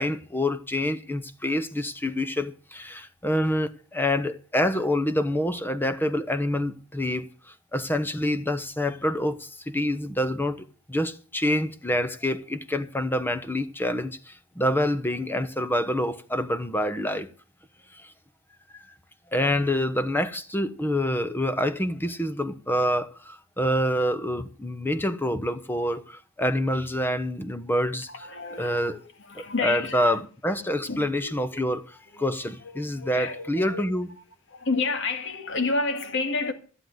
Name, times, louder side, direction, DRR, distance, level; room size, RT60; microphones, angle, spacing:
voice 1, 0.0-17.3 17.9-18.1 18.7-18.9 19.3-28.1 28.6-29.0 29.3-31.8 32.2-34.1, left 1 dB, 10° left, 0.9 m, -27 dB
voice 2, 28.1-28.9 29.2-30.2 30.9-31.8 32.1-32.3 32.6-33.9 34.5-36.5, left 3 dB, 60° left, 2.0 m, -30 dB
14.5 x 8.0 x 8.0 m
head